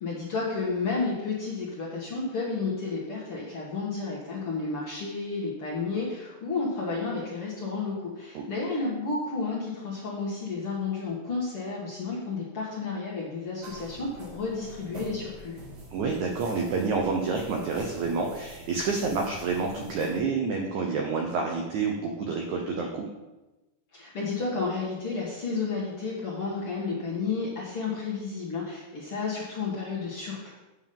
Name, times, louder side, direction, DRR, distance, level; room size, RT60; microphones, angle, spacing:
voice 1, 0.0-15.6 23.9-30.5, left 4 dB, 55° left, -6 dB, 1.6 m, -31 dB
sound 1, 13.6-20.2, right 1 dB, 40° right, 2.1 m, -45 dB
voice 2, 15.9-23.1, right 4 dB, 90° right, 2 dB, 1.6 m, -28 dB
8.2 x 7.2 x 5.3 m, 1.1 s
omnidirectional pair, 4.6 m